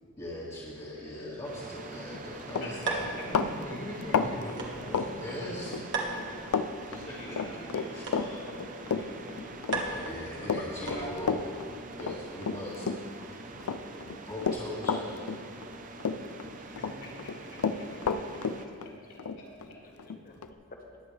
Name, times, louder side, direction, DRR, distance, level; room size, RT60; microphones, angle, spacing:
voice 1, 0.2-6.0 7.1-7.4 7.9-8.0 9.9-11.4 12.0-12.9 13.2-13.5 14.3-15.4, left 1 dB, 25° left, -10 dB, 1.9 m, -40 dB
voice 2, 0.9-1.4 2.5-3.3 6.9-11.4 16.6-18.1 18.6-18.9 19.4-19.5, left 1 dB, 60° left, -5 dB, 3.6 m, -45 dB
sound 1, 1.4-18.7, right 2 dB, 35° right, 0.7 m, -45 dB
Run, 2.0-2.2 2.5-5.8 6.1-6.7 6.9-13.3 13.6-15.7 16.0-16.9 17.2-20.5, left 5 dB, 80° left, 0.5 m, -31 dB
sound 2, 2.8-11.4, right 3 dB, 55° right, 1.5 m, -40 dB
voice 3, 17.6-19.7 20.0-20.3, left 2 dB, 40° left, 2 dB, 1.2 m, -56 dB
20.0 x 8.4 x 3.3 m, 2.1 s
head